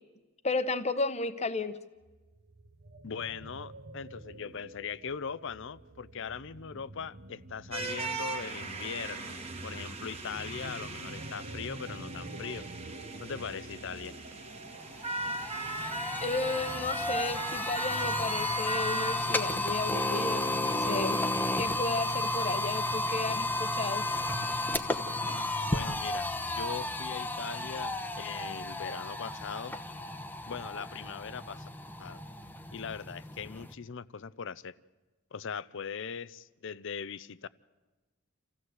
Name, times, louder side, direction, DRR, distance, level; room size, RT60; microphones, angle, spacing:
voice 1, 0.4-1.8 16.2-21.2 21.5-24.1, left 3 dB, 35° left, 1.0 m, -33 dB
sound 1, 2.0-16.1, right 1 dB, 50° right, 1.1 m, -48 dB
voice 2, 3.0-12.7 13.2-14.2 25.7-29.8 30.5-31.7 32.0-32.2 32.7-34.8 35.3-37.5, left 6 dB, 65° left, 0.6 m, -40 dB
sound 2, 7.7-21.2, right 3 dB, 30° right, 1.7 m, -39 dB
sound 3, 14.3-14.4 14.7-33.7, left 2 dB, 10° left, 1.0 m, -33 dB
27.0 x 15.5 x 8.0 m
head